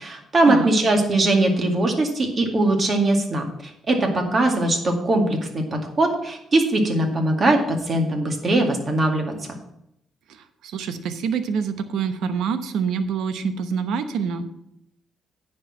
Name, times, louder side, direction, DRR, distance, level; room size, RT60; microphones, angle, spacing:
voice 1, 0.0-9.3, right 2 dB, 40° right, 3 dB, 2.1 m, -21 dB
voice 2, 10.3-14.5, right 6 dB, 80° right, 10 dB, 0.9 m, -26 dB
9.6 x 4.7 x 7.6 m, 0.79 s
cardioid pair, 90°, 0 cm